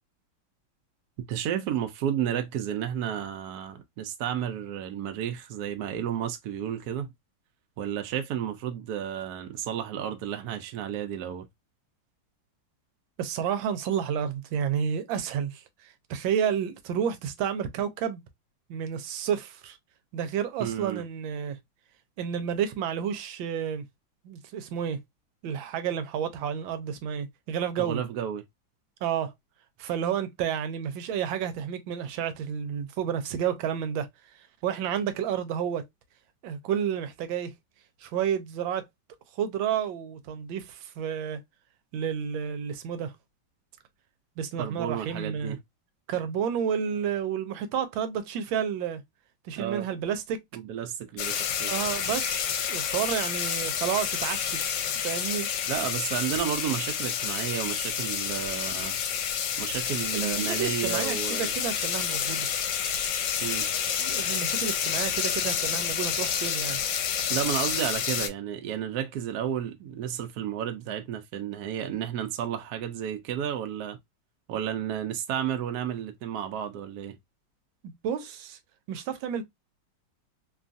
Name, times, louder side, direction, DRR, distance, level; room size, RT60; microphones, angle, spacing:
voice 1, 1.2-7.1 7.8-11.5 20.6-21.0 27.8-28.4 44.6-45.6 49.6-49.9 50.5-51.7 55.7-59.0 59.6-61.5 63.4-63.7 67.3-74.0 74.5-77.2, right 9 dB, 70° right, 0.9 m, -32 dB
voice 2, 13.2-18.2 18.7-19.8 20.1-21.6 22.2-23.8 24.2-25.0 25.4-28.0 29.0-29.3 29.8-35.9 36.4-37.5 38.0-38.9 39.3-41.4 41.9-43.1 44.4-45.6 46.1-49.0 49.4-50.4 51.7-54.6 55.0-55.5 60.1-62.5 64.0-66.8 77.8-78.6 78.9-79.4, right 8 dB, 90° right, 1.3 m, -30 dB
sound 1, 51.2-68.3, left 8 dB, 75° left, 1.3 m, -29 dB
3.2 x 2.3 x 2.5 m
omnidirectional pair, 2.1 m